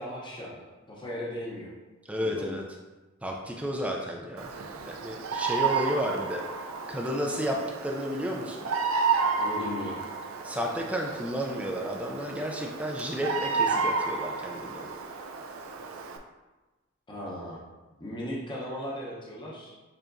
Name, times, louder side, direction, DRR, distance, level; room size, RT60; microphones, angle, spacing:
voice 1, 0.0-1.7 2.2-2.6 4.6-4.7 9.4-10.0 17.1-17.6 18.0-19.7, left 1 dB, 25° left, -5 dB, 0.8 m, -37 dB
voice 2, 2.1-2.6 3.2-4.5 4.9-6.4 6.9-8.7 10.4-14.9, equal, 5° right, 0 dB, 0.4 m, -32 dB
Bird vocalization bird call bird song, 4.4-16.2, right 5 dB, 80° right, 0.5 m, -31 dB
6.8 x 2.8 x 2.5 m, 1.2 s
head